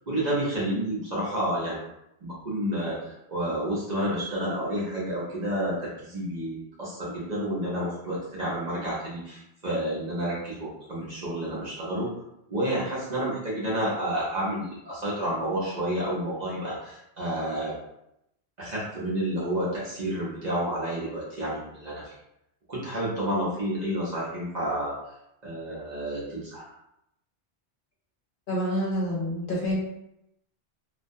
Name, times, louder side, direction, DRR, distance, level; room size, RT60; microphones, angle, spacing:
voice 1, 0.1-1.8 2.2-12.1 12.5-17.7 18.6-22.1 22.7-25.0 25.4-26.7, right 1 dB, 45° right, -7 dB, 0.7 m, -30 dB
voice 2, 28.5-29.8, equal, 55° left, -5 dB, 0.9 m, -27 dB
2.3 x 2.2 x 2.6 m, 0.82 s
omnidirectional pair, 1.1 m